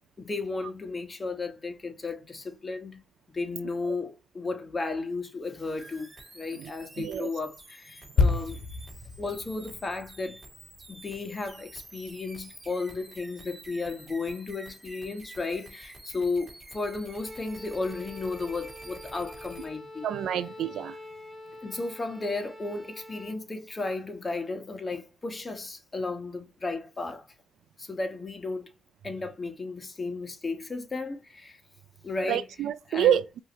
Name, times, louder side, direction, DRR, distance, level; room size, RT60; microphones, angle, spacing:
voice 1, 0.2-3.0 3.3-8.6 9.2-10.4 10.9-20.1 21.6-27.3 27.8-28.7 29.0-31.6 32.0-32.5 32.9-33.2, left 3 dB, 25° left, 1.2 m, -34 dB
sound 1, 5.8-19.7, right 2 dB, 15° right, 2.9 m, -49 dB
voice 2, 7.0-7.3 20.0-20.9 32.3-33.4, right 10 dB, 75° right, 0.3 m, -27 dB
sound 2, 8.2-11.8 12.1-12.3, left 4 dB, 55° left, 1.2 m, -30 dB
Bowed string instrument, 17.1-23.5, left 1 dB, 5° left, 2.1 m, -45 dB
5.5 x 2.9 x 3.0 m
cardioid pair, 90°, 0 cm